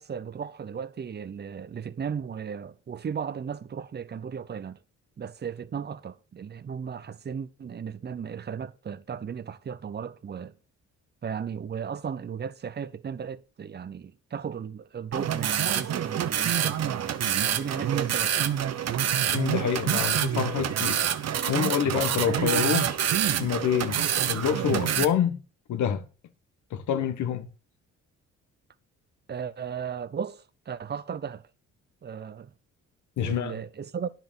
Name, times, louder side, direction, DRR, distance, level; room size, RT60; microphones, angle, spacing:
voice 1, 0.0-4.8 5.2-10.5 11.2-17.2 17.5-18.4 29.3-31.4 32.0-32.5 33.2-34.1, right 7 dB, 35° right, 0.8 m, -35 dB
sound 1, 15.1-25.0, right 9 dB, 60° right, 1.0 m, -26 dB
voice 2, 19.3-21.0 21.5-22.9 23.4-25.4 25.7-26.0 26.7-27.5 33.2-33.5, left 9 dB, 75° left, 1.5 m, -27 dB
10.0 x 6.0 x 7.2 m
cardioid pair, 90°, 30 cm